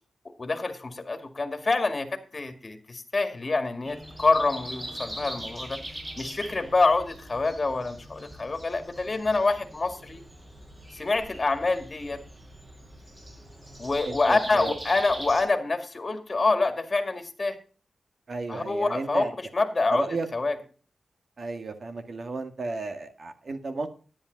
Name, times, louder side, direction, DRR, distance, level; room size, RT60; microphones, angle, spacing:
voice 1, 0.4-5.8 6.2-10.2 10.9-12.2 13.8-17.6 18.5-19.2 19.5-20.1 20.3-20.6, left 3 dB, 40° left, 7 dB, 2.1 m, -26 dB
Breathing, 3.8-15.4, right 1 dB, 25° right, 6.0 m, -42 dB
voice 2, 14.0-14.8 18.3-19.3 19.9-20.3 21.4-23.9, right 3 dB, 55° right, 7 dB, 1.8 m, -33 dB
10.5 x 10.0 x 3.9 m, 0.39 s
cardioid pair, 75°, 0 cm